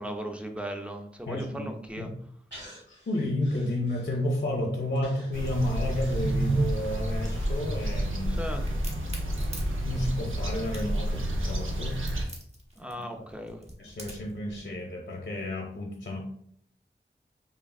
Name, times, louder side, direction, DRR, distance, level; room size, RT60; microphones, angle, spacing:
voice 1, 0.0-2.1 8.3-8.6 12.8-13.6, equal, 5° right, 4 dB, 0.4 m, -37 dB
voice 2, 1.3-2.1 2.9-8.4 9.3-9.4 9.8-12.1 13.8-16.2, left 1 dB, 55° left, 0 dB, 0.5 m, -31 dB
Breathing, 2.5-4.5 5.0-9.1 9.5-9.6, equal, 60° right, 1.3 m, -52 dB
sound 1, 5.3-12.2, right 1 dB, 90° right, 0.5 m, -29 dB
Crack, 8.7-14.4, right 1 dB, 35° right, 0.9 m, -45 dB
3.3 x 2.3 x 2.3 m, 0.65 s
wide cardioid pair, 50°, 20 cm